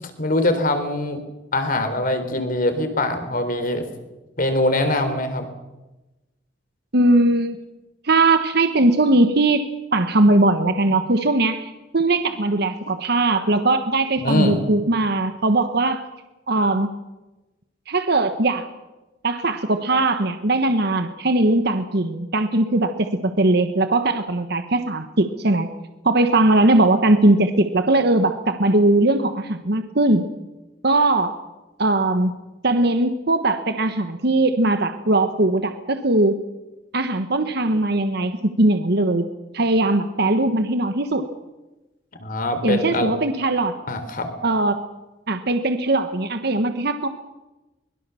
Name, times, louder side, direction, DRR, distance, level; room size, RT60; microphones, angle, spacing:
voice 1, 0.2-1.2 1.5-3.9 4.4-5.4 14.2-14.6 42.2-43.1 43.9-44.3, left 1 dB, 50° left, 8 dB, 3.8 m, -22 dB
voice 2, 6.9-7.6 8.0-9.7 9.9-16.0 16.5-16.9 17.9-18.7 19.2-25.7 26.0-30.2 30.8-31.4 31.8-32.3 32.6-36.4 36.9-39.2 39.5-41.2 42.6-43.8 44.4-44.8 45.3-47.1, right 2 dB, 60° right, 8 dB, 1.3 m, -19 dB
24.0 x 22.0 x 7.1 m, 1.1 s
head